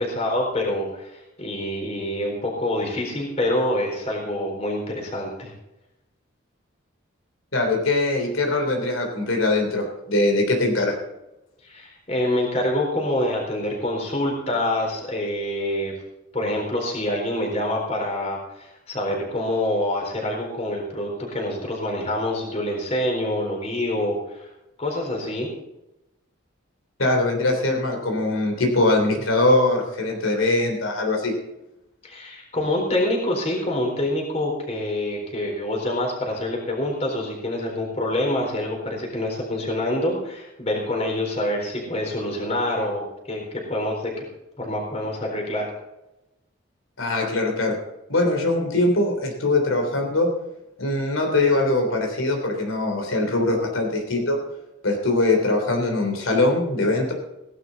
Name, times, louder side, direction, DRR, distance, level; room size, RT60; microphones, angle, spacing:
voice 1, 0.0-5.5 11.6-15.9 16.3-24.5 24.8-25.5 32.0-44.2 44.6-45.7, left 1 dB, 30° left, 0 dB, 4.0 m, -26 dB
voice 2, 7.5-10.9 27.0-31.3 47.0-47.7 48.1-50.3 50.8-54.4 54.8-57.1, left 2 dB, 90° left, 2 dB, 3.4 m, -22 dB
16.5 x 11.5 x 4.0 m, 0.91 s
head